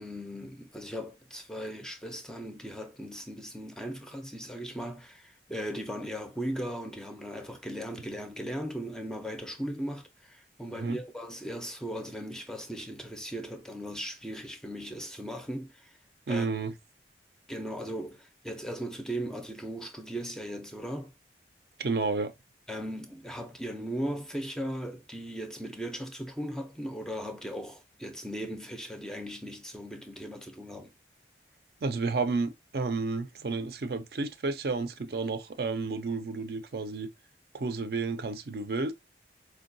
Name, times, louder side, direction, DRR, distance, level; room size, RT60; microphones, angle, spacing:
voice 1, 0.0-15.9 16.3-16.5 17.5-21.1 22.7-30.9, equal, 5° left, 0.4 m, -38 dB
voice 2, 16.3-16.7 21.8-22.3 31.8-37.1 37.5-38.9, right 3 dB, 60° right, 0.5 m, -31 dB
4.4 x 2.2 x 2.5 m
head